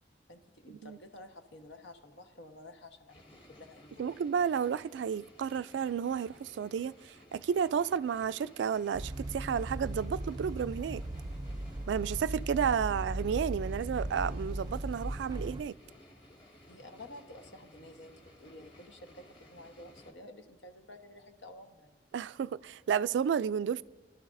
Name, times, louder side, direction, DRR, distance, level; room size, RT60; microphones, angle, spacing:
voice 1, 0.3-4.1 12.8-13.0 16.7-22.0, left 1 dB, 90° left, 1.2 m, -51 dB
sound 1, 3.1-20.1, left 1 dB, 30° left, 1.6 m, -57 dB
voice 2, 4.0-11.0 11.9-15.8 22.1-23.8, right 7 dB, 85° right, 0.3 m, -32 dB
sound 2, 8.9-15.6, right 1 dB, 25° right, 0.5 m, -38 dB
23.0 x 12.0 x 2.6 m
head